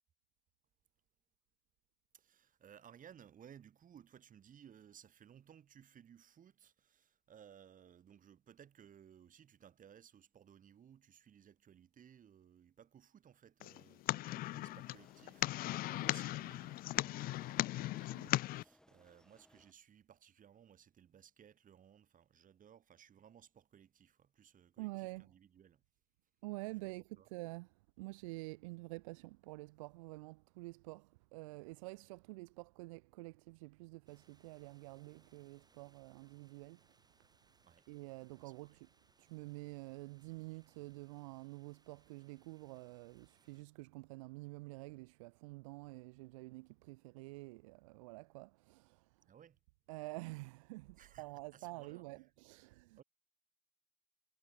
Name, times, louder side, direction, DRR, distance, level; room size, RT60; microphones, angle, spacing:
voice 1, 2.1-25.8 27.2-27.3 37.6-37.9 38.4-38.8 49.3-49.6 51.0-52.1 53.0-53.1, right 9 dB, 50° right, 7.5 m, -61 dB
sound 1, 13.6-18.6, left 17 dB, 60° left, 0.6 m, -38 dB
sound 2, 14.2-19.7, equal, 5° left, 4.3 m, -69 dB
voice 2, 24.8-25.3 26.4-37.0 37.9-38.9 39.2-49.3 49.9-53.0, right 24 dB, 75° right, 0.9 m, -48 dB
sound 3, 34.1-43.6, right 3 dB, 25° right, 4.9 m, -73 dB
figure-of-eight pair, 45°, 17 cm